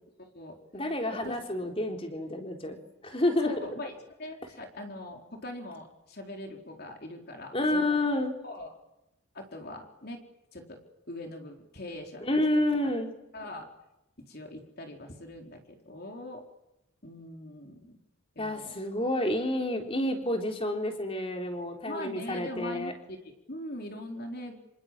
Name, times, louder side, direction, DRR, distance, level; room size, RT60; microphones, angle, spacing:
voice 1, 0.2-0.6 1.1-1.3 3.4-3.9 4.2-8.0 8.4-8.7 9.3-10.2 10.5-10.8 11.1-12.4 13.3-13.7 14.2-16.4 17.0-18.0 18.4-18.8 21.9-24.6, left 1 dB, 45° left, 3 dB, 4.2 m, -41 dB
voice 2, 0.7-2.8 3.0-3.5 7.5-8.3 12.2-13.1 18.4-22.9, left 1 dB, 25° left, 3 dB, 3.8 m, -29 dB
27.5 x 27.5 x 7.6 m, 0.89 s
head